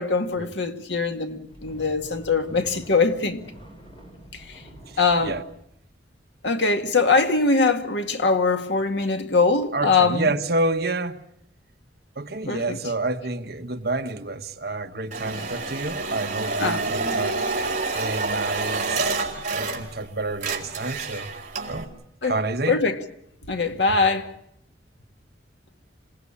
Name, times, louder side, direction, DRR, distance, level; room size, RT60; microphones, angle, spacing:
voice 1, 0.0-3.4 4.5-4.6 5.0-5.4 6.4-10.3 12.5-12.8 16.6-16.8 22.2-22.3 22.7-23.0 23.5-24.3, left 4 dB, 80° left, 2.0 m, -22 dB
sound 1, 1.2-5.5, equal, 30° left, 6.3 m, -46 dB
voice 2, 9.7-11.2 12.2-17.4 17.9-19.2 19.5-21.3 21.7-21.9 22.2-22.8, right 2 dB, 60° right, 1.4 m, -29 dB
sound 2, 15.1-20.1 20.3-21.8, right 3 dB, 45° right, 4.0 m, -28 dB
27.0 x 18.0 x 8.5 m
head